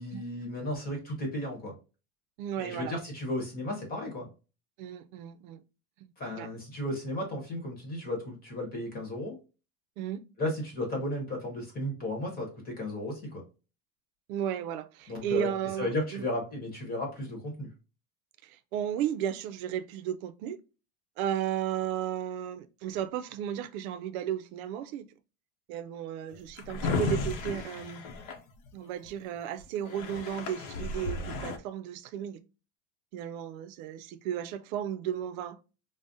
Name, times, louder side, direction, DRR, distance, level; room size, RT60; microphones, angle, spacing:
voice 1, 0.0-1.7 2.6-4.3 6.2-9.4 10.4-13.4 15.1-15.5 15.8-17.7, left 1 dB, 20° left, 1.1 m, -34 dB
voice 2, 2.4-3.0 4.8-5.6 6.3-6.5 10.0-10.2 14.3-16.2 18.4-20.6 21.2-25.1 25.7-28.0 28.7-32.4 33.1-35.6, right 10 dB, 75° right, 0.6 m, -34 dB
Drawer open or close, 26.3-29.1 29.6-29.7 29.9-31.6, left 3 dB, 60° left, 0.7 m, -34 dB
5.0 x 2.1 x 2.5 m
cardioid pair, 170°, 42 cm